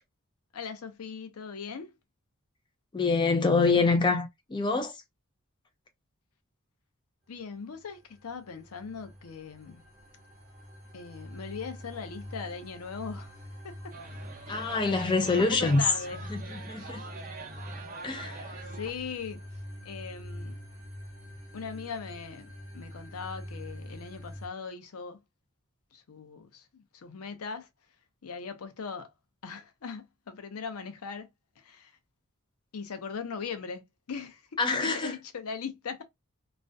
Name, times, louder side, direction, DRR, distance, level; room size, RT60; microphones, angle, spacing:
voice 1, 0.5-2.0 7.3-9.9 10.9-13.4 13.6-13.9 14.9-15.1 15.4-16.2 18.7-19.5 19.8-20.6 21.5-25.2 25.9-27.7 28.2-29.1 29.4-31.3 31.6-31.9 32.7-33.8 34.1-36.0, left 5 dB, 90° left, 0.6 m, -40 dB
voice 2, 2.9-4.9 14.5-15.9 16.3-17.0 18.0-18.5 34.6-35.1, left 3 dB, 20° left, 0.4 m, -26 dB
sound 1, 8.2-24.5, equal, 5° right, 0.9 m, -44 dB
sound 2, 13.9-18.9, right 4 dB, 40° right, 0.5 m, -44 dB
2.4 x 2.1 x 2.5 m
head